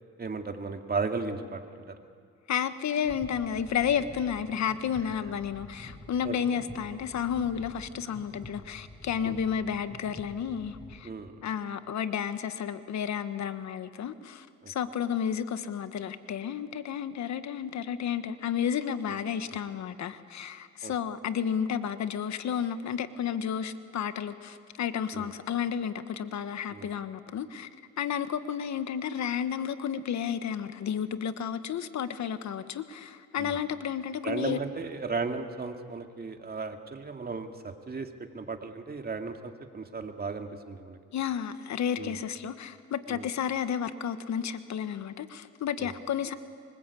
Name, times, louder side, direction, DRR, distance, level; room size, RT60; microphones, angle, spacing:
voice 1, 0.2-2.0 6.2-6.4 9.2-9.4 11.0-11.3 14.6-14.7 20.8-20.9 25.1-25.3 26.7-26.9 33.4-33.6 34.2-41.0 42.0-42.2 43.1-43.2 45.8-45.9, right 4 dB, 30° right, 5 dB, 2.2 m, -35 dB
voice 2, 2.5-11.1 11.4-27.7 28.0-34.6 41.1-46.3, left 8 dB, 65° left, 11 dB, 1.4 m, -32 dB
sound 1, 3.0-11.0, left 1 dB, 15° left, 6.5 m, -48 dB
25.0 x 24.5 x 8.4 m, 2.1 s
cardioid pair, 90°, 30 cm